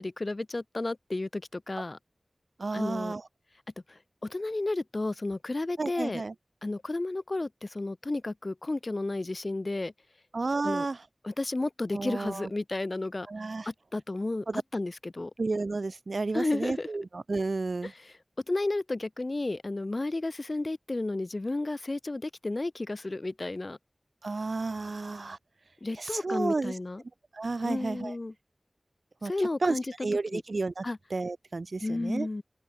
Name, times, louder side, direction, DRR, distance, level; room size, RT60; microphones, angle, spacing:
voice 1, 0.0-2.0 2.7-3.1 3.9-6.2 6.6-9.9 10.6-10.9 11.2-13.3 13.7-15.3 16.3-16.9 17.8-18.2 18.5-23.8 25.8-27.0 27.6-28.3 29.2-29.9 30.3-30.4 30.8-31.0 31.8-32.4, left 2 dB, 50° left, 2.4 m, -32 dB
voice 2, 2.6-3.2 5.8-6.3 10.3-11.0 11.9-12.4 13.3-13.7 14.5-14.6 15.4-17.9 24.2-25.4 26.0-26.7 27.3-28.1 29.2-29.3 29.6-29.7 30.0-30.8 31.1-32.3, right 3 dB, 75° right, 2.4 m, -31 dB
open air
wide cardioid pair, 50°, 0 cm